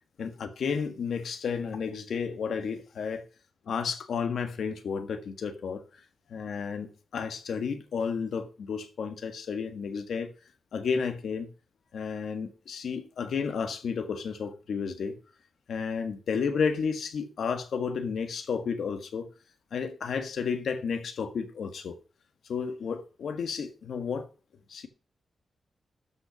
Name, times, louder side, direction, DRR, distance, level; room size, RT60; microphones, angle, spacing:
voice 1, 0.2-3.2 3.7-5.8 6.3-10.3 10.7-11.5 11.9-15.2 15.7-19.3 19.7-21.9 22.5-24.3 24.7-24.9, left 6 dB, 80° left, 1.6 m, -32 dB
13.0 x 5.7 x 5.9 m
wide cardioid pair, 145°, 0 cm